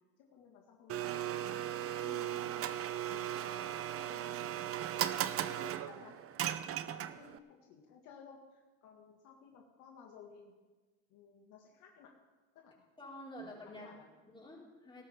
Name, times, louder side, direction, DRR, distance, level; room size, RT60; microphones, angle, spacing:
voice 1, 0.2-1.6 3.1-4.6 5.0-10.6 11.1-12.2 12.5-12.8 13.4-14.1, left 6 dB, 65° left, 0 dB, 2.1 m, -57 dB
Domestic sounds home sounds, 0.9-7.4, right 11 dB, 45° right, 0.8 m, -37 dB
voice 2, 2.0-2.5 13.0-13.9 14.3-15.0, left 1 dB, 15° left, -4 dB, 5.1 m, -49 dB
18.5 x 12.5 x 3.7 m, 1.2 s
supercardioid pair, 105°, 32 cm